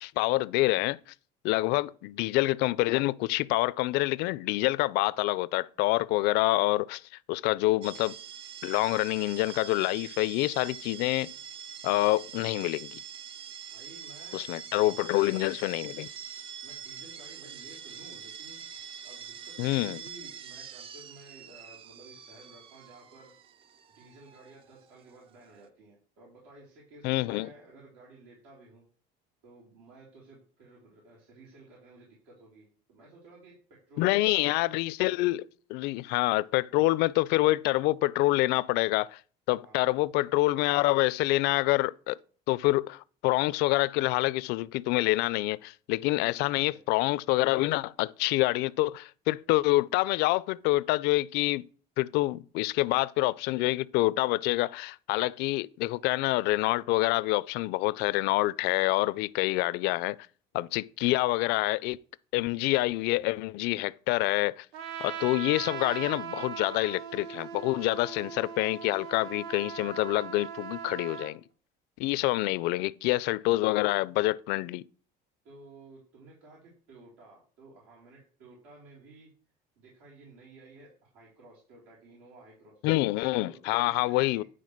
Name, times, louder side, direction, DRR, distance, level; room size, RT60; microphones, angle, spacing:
voice 1, 0.0-1.0 1.4-7.0 7.3-8.1 8.6-11.3 11.8-13.0 14.3-16.1 19.6-20.0 27.0-27.5 34.0-39.2 39.5-42.2 42.5-51.6 52.0-60.2 60.5-62.0 62.3-64.7 65.0-71.4 72.0-74.8 82.8-84.4, left 19 dB, 65° left, 0.4 m, -27 dB
sound 1, 7.8-25.7, right 8 dB, 30° right, 0.4 m, -45 dB
voice 2, 13.7-15.6 16.6-18.6 19.0-23.3 23.9-28.8 29.4-34.6 39.6-39.9 46.3-46.8 72.4-72.7 75.4-79.3 79.8-82.8 83.4-84.4, right 2 dB, 90° right, 3.6 m, -54 dB
Trumpet, 64.7-71.4, right 8 dB, 65° right, 1.1 m, -39 dB
10.0 x 3.7 x 6.4 m
cardioid pair, 165°, 18 cm